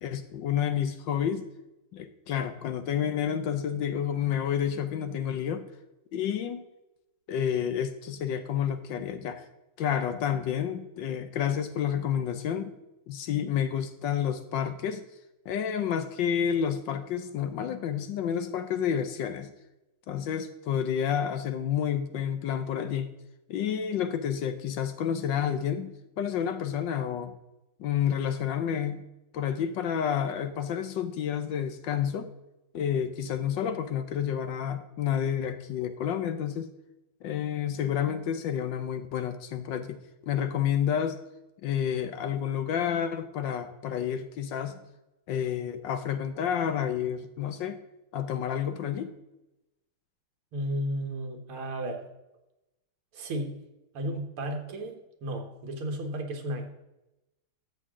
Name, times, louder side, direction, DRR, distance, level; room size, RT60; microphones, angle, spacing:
voice 1, 0.0-1.4 1.9-5.7 6.1-6.6 7.3-9.4 9.8-12.7 13.1-15.0 15.4-19.5 20.1-23.1 23.5-27.3 27.8-29.0 29.3-32.3 32.7-36.7 37.2-41.2 41.6-44.8 45.3-47.8 48.1-49.1, left 8 dB, 70° left, 10 dB, 1.3 m, -30 dB
voice 2, 50.5-52.1 53.1-53.5 53.9-56.7, right 1 dB, 85° right, 4 dB, 2.3 m, -33 dB
12.5 x 7.9 x 3.7 m, 0.94 s
omnidirectional pair, 2.3 m